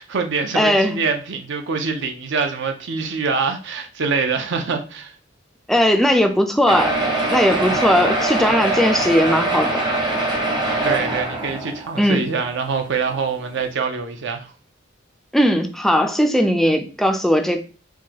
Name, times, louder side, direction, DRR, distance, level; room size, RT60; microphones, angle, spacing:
voice 1, 0.0-5.1 10.8-14.5, right 5 dB, 65° right, 0.6 m, -24 dB
voice 2, 0.5-1.0 5.7-7.0 7.3-9.8 12.0-12.2 15.3-17.6, equal, ahead, 0.3 m, -18 dB
sound 1, 6.7-12.1 12.8-12.9 13.1-13.2 13.6-13.7, right 2 dB, 25° right, 0.8 m, -22 dB
4.5 x 2.2 x 2.8 m
head